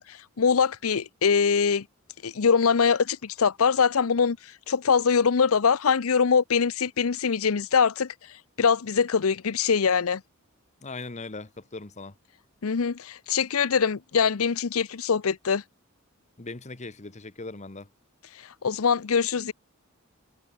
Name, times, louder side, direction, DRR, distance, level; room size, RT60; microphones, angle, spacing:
voice 1, 0.0-1.8 2.2-4.4 4.7-8.1 8.6-10.2 12.6-15.6 18.6-19.5, left 6 dB, 90° left, 0.7 m, -23 dB
voice 2, 10.8-12.1 16.4-17.9, left 3 dB, 35° left, 1.3 m, -39 dB
head